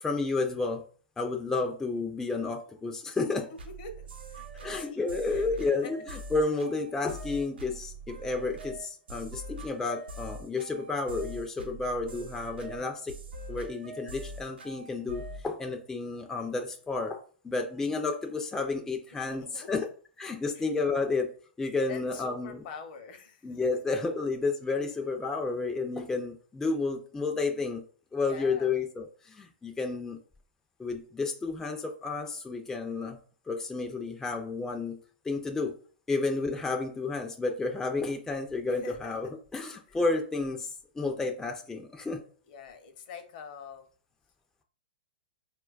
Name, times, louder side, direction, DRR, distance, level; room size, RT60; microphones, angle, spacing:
voice 1, 0.0-0.8 1.2-3.5 4.6-13.2 13.5-19.9 20.2-21.3 21.6-22.6 23.4-27.8 28.1-30.2 30.8-33.2 33.5-35.0 35.2-35.7 36.1-42.2, left 3 dB, 10° left, 2 dB, 0.4 m, -31 dB
sound 1, 3.6-15.5, right 1 dB, 80° right, 0.7 m, -43 dB
voice 2, 3.8-5.9 19.2-19.9 20.5-20.7 21.9-23.5 28.2-28.7 36.2-36.4 38.7-39.4 42.5-43.9, left 5 dB, 55° left, 7 dB, 0.7 m, -46 dB
4.2 x 2.2 x 2.3 m, 0.44 s
hypercardioid pair, 115°, 6 cm